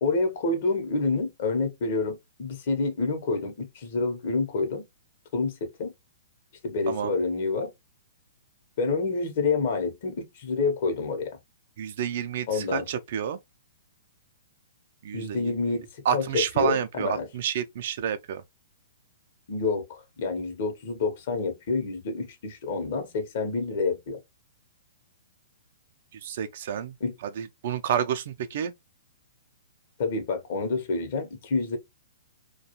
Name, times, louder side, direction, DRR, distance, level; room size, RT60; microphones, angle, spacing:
voice 1, 0.0-4.8 5.3-5.9 6.6-7.7 8.8-11.4 12.5-12.9 15.1-17.3 19.5-24.2 27.0-27.1 30.0-31.8, left 3 dB, 55° left, 0.8 m, -28 dB
voice 2, 11.8-13.4 15.0-15.7 16.1-18.4 26.1-26.9 27.4-28.7, right 9 dB, 55° right, 0.4 m, -29 dB
2.4 x 2.3 x 2.8 m
figure-of-eight pair, 120°, 0 cm